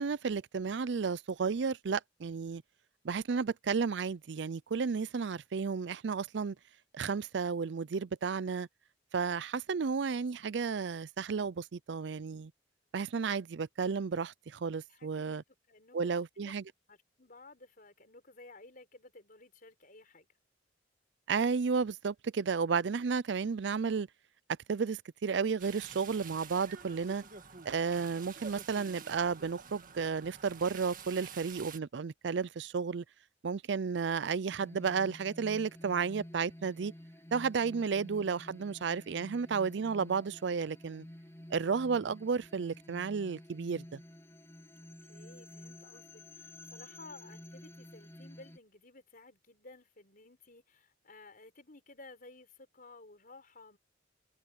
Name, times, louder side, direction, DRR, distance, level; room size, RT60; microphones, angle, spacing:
voice 1, 0.0-2.6 3.0-6.6 6.9-8.7 9.1-12.5 12.9-15.4 15.9-16.6 21.3-24.1 24.7-27.2 27.7-33.0 33.4-36.9 37.3-41.1 41.5-44.0, right 5 dB, 65° right, 0.5 m, -33 dB
voice 2, 14.9-16.5 16.9-20.3 37.6-37.9 45.0-53.8, left 3 dB, 50° left, 4.7 m, -55 dB
sound 1, 25.6-31.8, right 6 dB, 45° right, 1.9 m, -49 dB
sound 2, 34.5-48.6, left 1 dB, 15° left, 3.7 m, -51 dB
head